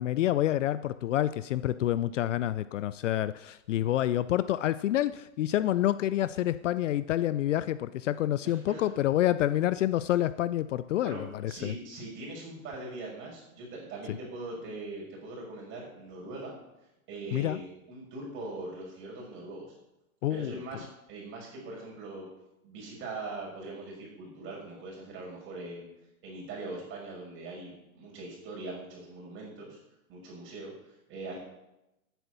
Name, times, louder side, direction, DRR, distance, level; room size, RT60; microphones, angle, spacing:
voice 1, 0.0-11.7 17.3-17.6 20.2-20.6, left 13 dB, 55° left, 16 dB, 0.5 m, -28 dB
voice 2, 8.4-8.8 11.0-16.6 17.1-19.7 20.3-22.3 22.6-25.9 26.2-29.8 30.1-31.4, right 2 dB, 25° right, -2 dB, 5.9 m, -41 dB
11.5 x 9.3 x 6.8 m, 0.92 s
hypercardioid pair, 140°, 44 cm